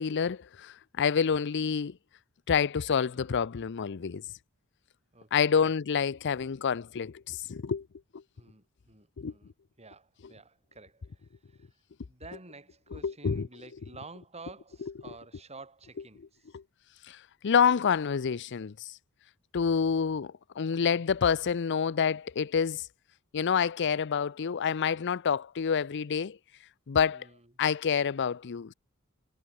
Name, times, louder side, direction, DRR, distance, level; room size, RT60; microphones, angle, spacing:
voice 1, 0.0-2.0 2.5-4.2 5.3-7.9 8.1-8.2 9.2-9.3 12.9-13.5 16.5-16.6 17.1-19.0 19.5-22.9 23.3-26.4 26.9-27.3 27.6-28.7, left 6 dB, 55° left, 0.5 m, -28 dB
voice 2, 3.0-3.4 5.1-5.7 8.4-11.7 12.1-16.5 20.6-21.0 27.1-27.5, right 3 dB, 30° right, 6.2 m, -51 dB
head